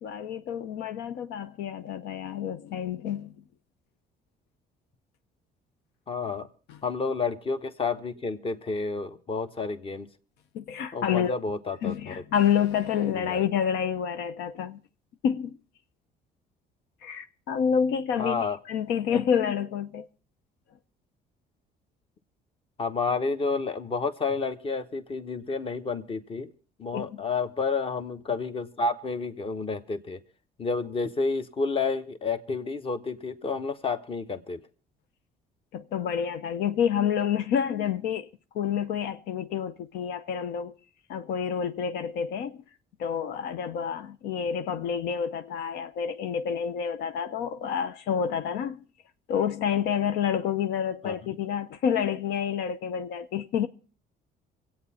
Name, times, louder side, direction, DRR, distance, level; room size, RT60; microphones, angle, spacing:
voice 1, 0.0-3.3 6.7-6.8 10.5-11.4 11.8-14.8 15.2-15.6 17.0-20.1 26.9-27.2 35.7-38.3 38.5-40.7 41.1-42.6 43.0-48.8 49.3-53.7, left 8 dB, 85° left, 0.7 m, -28 dB
voice 2, 6.1-6.5 6.8-10.1 10.9-12.1 13.3-13.4 18.2-18.6 19.1-19.2 22.8-26.5 26.8-30.2 30.6-34.6 51.0-51.2, left 4 dB, 35° left, 1.1 m, -30 dB
25.5 x 8.6 x 4.3 m
cardioid pair, 110°, 17 cm